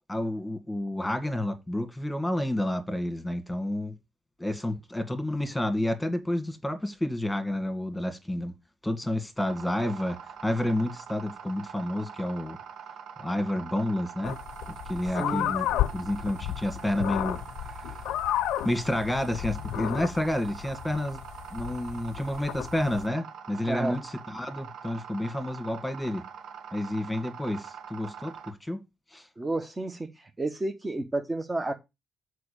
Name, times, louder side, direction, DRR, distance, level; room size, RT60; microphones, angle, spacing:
voice 1, 0.1-3.9 4.4-8.5 8.8-12.6 13.2-14.4 14.9-15.7 15.9-17.4 18.6-21.2 21.5-26.2 26.7-28.8 29.1-29.3, left 1 dB, 5° left, 1.8 m, -30 dB
sound 1, 9.4-28.5, right 7 dB, 70° right, 1.1 m, -44 dB
sound 2, 14.2-23.1, left 13 dB, 90° left, 0.6 m, -33 dB
voice 2, 15.0-15.8 23.7-24.0 29.4-31.7, right 2 dB, 20° right, 1.2 m, -32 dB
6.8 x 4.9 x 6.7 m
cardioid pair, 90°, 0 cm